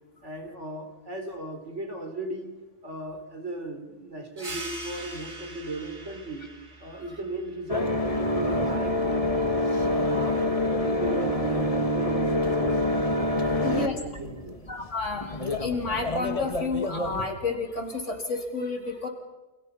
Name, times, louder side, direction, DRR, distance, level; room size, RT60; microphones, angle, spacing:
voice 1, 0.2-2.6 2.8-6.5 6.8-8.0 8.3-9.6 10.0-12.8 13.5-14.6, right 1 dB, 80° right, 5 dB, 4.4 m, -37 dB
sound 1, 4.4-9.5, right 2 dB, 40° right, 2.4 m, -43 dB
sound 2, 7.7-17.3, left 1 dB, 30° left, 2.2 m, -26 dB
voice 2, 13.6-14.0 14.7-19.1, left 4 dB, 85° left, 3 dB, 4.4 m, -31 dB
29.5 x 28.0 x 5.6 m, 1.1 s
omnidirectional pair, 1.2 m